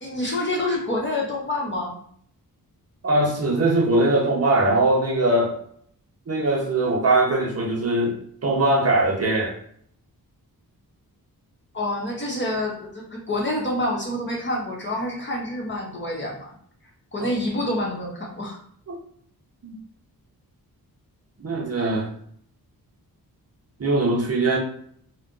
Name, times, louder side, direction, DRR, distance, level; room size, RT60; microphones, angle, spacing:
voice 1, 0.0-1.9 11.7-16.5 17.1-18.6, left 1 dB, 30° left, -2 dB, 0.9 m, -27 dB
voice 2, 3.0-5.6 6.3-8.2 8.4-9.5 17.2-17.3 18.9-19.0 19.6-19.7 21.4-22.1 23.8-24.6, right 2 dB, 40° right, -1 dB, 0.6 m, -21 dB
2.5 x 2.2 x 3.7 m, 0.64 s
wide cardioid pair, 115°, 37 cm